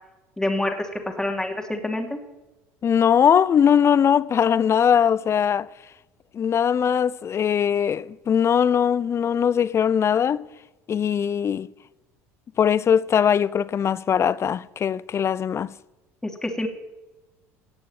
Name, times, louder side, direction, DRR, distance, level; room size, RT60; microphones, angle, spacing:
voice 1, 0.4-0.9 1.2-2.2 16.2-16.7, left 1 dB, 10° left, 2.8 m, -26 dB
voice 2, 2.8-5.7 6.3-10.4 10.9-11.7 12.6-15.7, left 8 dB, 35° left, 0.6 m, -20 dB
17.0 x 7.0 x 8.9 m
hypercardioid pair, 80°, 8 cm